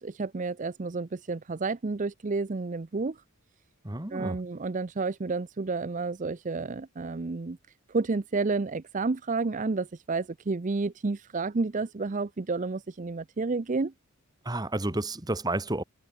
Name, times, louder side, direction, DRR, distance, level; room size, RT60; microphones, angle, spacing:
voice 1, 0.0-3.2 4.1-7.6 7.9-13.9, right 3 dB, 35° right, 0.5 m, -30 dB
voice 2, 3.8-4.4 14.4-15.8, right 1 dB, 20° right, 1.5 m, -31 dB
head